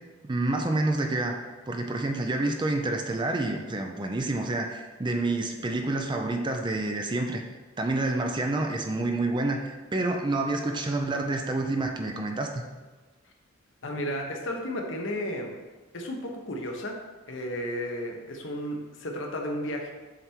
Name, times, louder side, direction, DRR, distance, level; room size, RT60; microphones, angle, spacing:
voice 1, 0.2-1.4 1.7-7.4 7.8-12.6, right 2 dB, 20° right, 3 dB, 0.5 m, -28 dB
voice 2, 13.8-15.5 15.9-17.0 17.3-19.9, equal, 65° left, 1 dB, 0.9 m, -33 dB
7.3 x 3.4 x 4.5 m, 1.3 s
head